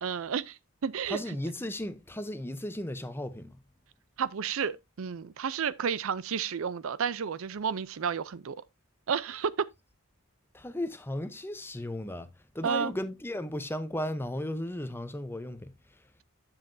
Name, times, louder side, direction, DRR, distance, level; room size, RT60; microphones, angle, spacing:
voice 1, 0.0-1.2 4.2-8.6 9.1-9.7 12.6-12.9, right 7 dB, 60° right, 0.5 m, -31 dB
voice 2, 1.1-3.6 10.5-12.3 12.5-15.7, left 1 dB, 10° left, 0.7 m, -35 dB
10.5 x 7.4 x 2.6 m
head